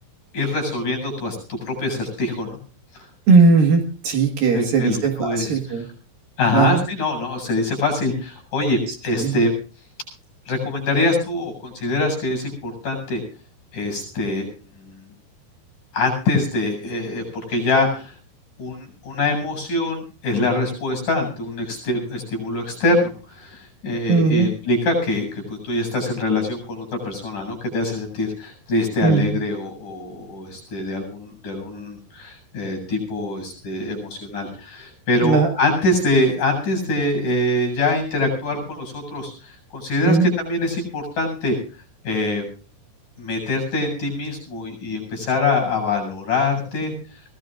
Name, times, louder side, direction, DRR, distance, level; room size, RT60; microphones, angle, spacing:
voice 1, 0.3-2.6 2.9-3.0 4.5-5.8 6.4-9.5 10.5-13.2 13.7-14.5 14.8-14.9 15.9-18.1 18.6-41.6 42.0-42.5 43.2-46.9, left 2 dB, 50° left, 5 dB, 9.2 m, -24 dB
voice 2, 3.3-5.8 6.5-6.8 9.2-9.3 24.1-24.5 29.0-29.3 35.2-35.5 40.0-40.3, right 4 dB, 60° right, 4 dB, 3.3 m, -17 dB
23.5 x 18.0 x 2.6 m, 0.37 s
omnidirectional pair, 4.8 m